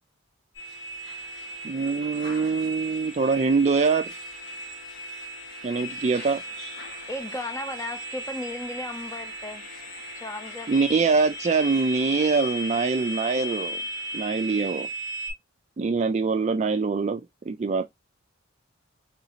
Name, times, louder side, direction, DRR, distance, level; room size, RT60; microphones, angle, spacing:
sound 1, 0.5-15.3, right 1 dB, 55° left, 2.2 m, -36 dB
voice 1, 1.6-4.1 5.6-6.4 10.7-13.8 14.1-14.9 15.8-17.2 17.5-17.8, right 4 dB, 35° right, 0.3 m, -24 dB
voice 2, 7.1-9.6 10.2-10.7, left 1 dB, 15° left, 0.6 m, -35 dB
3.9 x 2.6 x 2.8 m
head